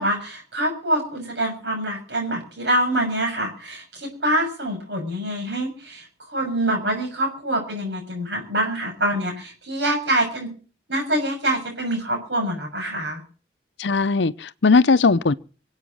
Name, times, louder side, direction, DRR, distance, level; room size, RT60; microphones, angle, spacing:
voice 1, 0.0-10.5 10.9-13.2, right 1 dB, 80° right, 6.5 m, -25 dB
voice 2, 13.8-15.3, left 4 dB, 80° left, 0.7 m, -18 dB
24.5 x 8.2 x 6.3 m
head